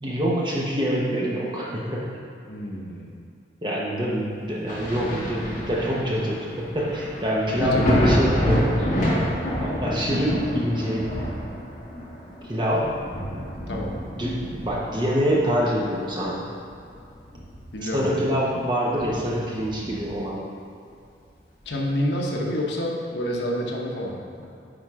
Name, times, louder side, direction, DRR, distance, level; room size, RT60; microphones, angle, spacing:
voice 1, 0.0-2.1 3.6-9.1 9.6-11.2 12.4-12.9 14.2-16.5 17.8-20.4, equal, 25° right, -4 dB, 1.1 m, -25 dB
voice 2, 2.5-3.1 7.6-8.1 13.7-14.0 17.7-18.1 21.7-24.2, left 1 dB, 75° left, -1 dB, 1.0 m, -28 dB
Thunder, 4.7-16.0 16.4-17.9 18.3-18.4 18.9-20.2 21.6-21.7, equal, 45° left, 1.7 m, -28 dB
8.9 x 3.7 x 4.8 m, 2.5 s
head